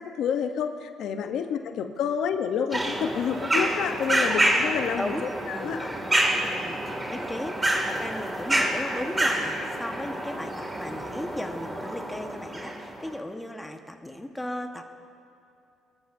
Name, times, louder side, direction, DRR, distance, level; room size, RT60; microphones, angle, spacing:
voice 1, 0.0-5.9, left 7 dB, 70° left, 7 dB, 0.8 m, -29 dB
sound 1, 2.7-13.1, right 1 dB, 20° right, 2.3 m, -28 dB
voice 2, 4.9-5.8 6.4-14.9, left 1 dB, 10° left, 4 dB, 1.2 m, -36 dB
24.0 x 13.0 x 2.7 m, 2.7 s
cardioid pair, 95°, 0 cm